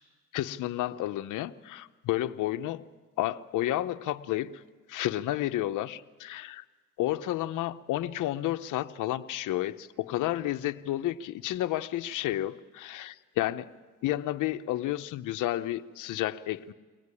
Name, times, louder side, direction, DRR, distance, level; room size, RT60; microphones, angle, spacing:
voice 1, 0.3-2.8 3.2-4.6 4.9-6.6 7.0-13.7 14.0-16.7, left 14 dB, 85° left, 10 dB, 0.9 m, -31 dB
24.0 x 18.5 x 9.8 m, 1.4 s
cardioid pair, 90°, 30 cm